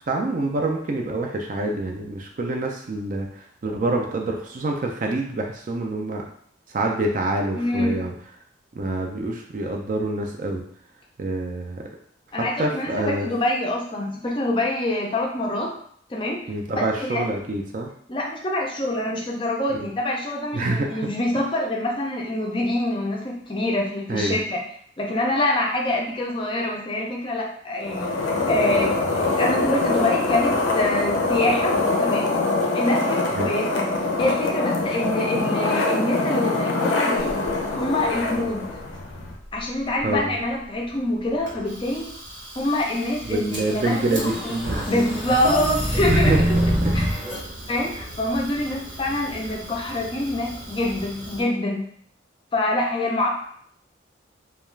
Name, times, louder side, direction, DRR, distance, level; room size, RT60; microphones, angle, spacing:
voice 1, 0.1-6.3 6.7-8.1 8.8-10.6 11.2-11.9 12.3-13.3 16.5-17.9 19.7-19.9 20.5-21.1 24.1-24.4 33.3-33.5 40.0-40.4 43.3-45.0 46.1-47.1, right 2 dB, 40° right, 2 dB, 0.3 m, -26 dB
voice 2, 7.6-8.0 12.3-15.7 16.1-16.4 16.8-17.2 18.1-24.6 25.0-28.1 28.5-32.3 32.7-33.9 34.2-37.3 37.7-38.7 39.5-42.1 42.5-44.5 44.9-46.3 46.9-47.2 47.7-51.9 52.5-53.3, left 1 dB, 25° left, -1 dB, 0.4 m, -25 dB
sound 1, 27.8-39.3, left 2 dB, 85° left, 0.5 m, -24 dB
Fire, 37.2-51.4, right 1 dB, 70° right, 0.8 m, -39 dB
sound 2, 43.6-47.4, equal, 5° right, 0.7 m, -24 dB
2.3 x 2.3 x 3.1 m, 0.63 s
head